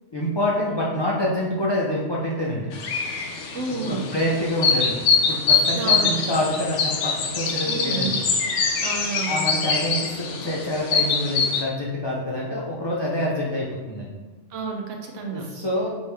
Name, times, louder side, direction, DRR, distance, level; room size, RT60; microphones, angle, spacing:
voice 1, 0.1-2.7 3.7-5.0 5.3-8.1 9.3-14.1 15.3-15.9, left 1 dB, 40° left, -5 dB, 0.3 m, -26 dB
sound 1, 2.7-11.6, left 5 dB, 90° left, 1.0 m, -24 dB
voice 2, 3.5-4.1 5.7-6.1 7.7-8.1 8.8-9.4 14.5-15.4, right 4 dB, 85° right, 1 dB, 1.0 m, -30 dB
4.4 x 3.0 x 3.3 m, 1.3 s
omnidirectional pair, 1.2 m